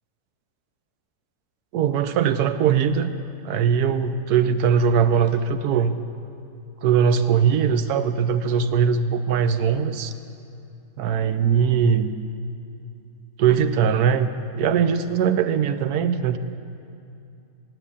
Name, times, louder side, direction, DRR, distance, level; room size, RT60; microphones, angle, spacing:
voice 1, 1.7-3.1 3.4-5.9 6.8-10.1 11.0-12.1 13.4-16.4, right 7 dB, 90° right, 10 dB, 1.2 m, -20 dB
10.0 x 9.0 x 9.8 m, 2.6 s
omnidirectional pair, 1.6 m